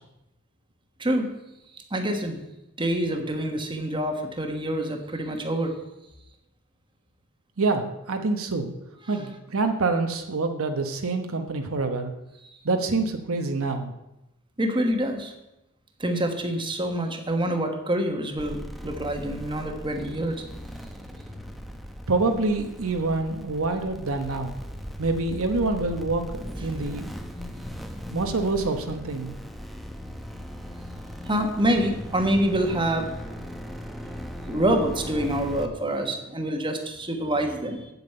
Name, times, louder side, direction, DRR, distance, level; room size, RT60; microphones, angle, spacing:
voice 1, 1.0-1.3 1.7-2.4 2.8-5.8 9.1-9.2 12.4-12.6 14.6-15.3 16.0-20.4 21.2-21.3 31.2-33.1 34.4-37.9, right 1 dB, 20° right, 4 dB, 1.4 m, -26 dB
voice 2, 7.6-8.7 9.1-12.1 12.6-13.9 22.1-24.6 25.0-27.1 28.1-29.3, right 3 dB, 65° right, 5 dB, 1.0 m, -26 dB
sound 1, 18.4-35.7, equal, ahead, 0.8 m, -38 dB
8.0 x 7.4 x 8.7 m, 0.92 s
head